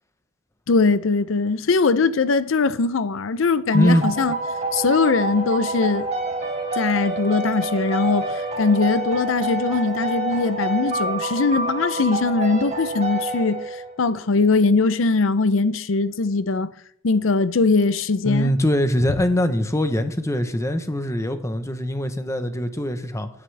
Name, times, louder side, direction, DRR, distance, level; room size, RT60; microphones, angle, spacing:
voice 1, 0.7-4.3 4.7-6.1 6.7-16.7 17.0-18.5, left 4 dB, 80° left, 0.6 m, -21 dB
voice 2, 3.7-4.1 18.2-23.3, equal, 15° left, 0.9 m, -22 dB
sound 1, 3.7-14.1, right 2 dB, 35° right, 3.2 m, -27 dB
16.0 x 9.7 x 3.4 m
head